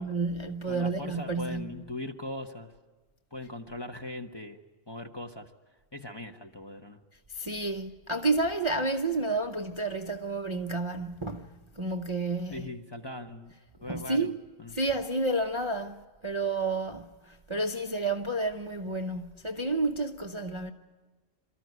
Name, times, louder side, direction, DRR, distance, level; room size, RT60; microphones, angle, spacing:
voice 1, 0.0-1.8 7.3-12.7 13.9-14.4 14.7-20.7, right 2 dB, 25° right, 0.7 m, -30 dB
voice 2, 0.7-2.7 3.3-4.6 4.9-5.5 5.9-7.0 12.5-13.5 13.8-14.3 14.6-14.7, left 1 dB, 20° left, 1.0 m, -40 dB
27.0 x 14.0 x 9.5 m
omnidirectional pair, 1.4 m